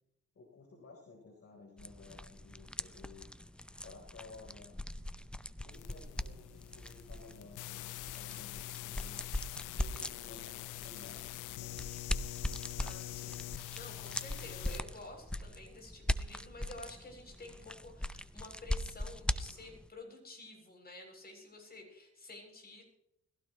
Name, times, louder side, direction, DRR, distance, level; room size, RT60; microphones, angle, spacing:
voice 1, 0.3-3.3 3.8-4.8 5.6-9.3 9.7-11.9, left 4 dB, 50° left, -2 dB, 4.2 m, -55 dB
sound 1, 1.8-19.9, left 1 dB, 5° left, 0.6 m, -41 dB
sound 2, 5.7-14.8, left 18 dB, 90° left, 0.5 m, -45 dB
voice 2, 12.8-22.8, left 2 dB, 30° left, 2 dB, 7.6 m, -51 dB
21.5 x 16.5 x 3.2 m, 0.75 s
cardioid pair, 90°, 30 cm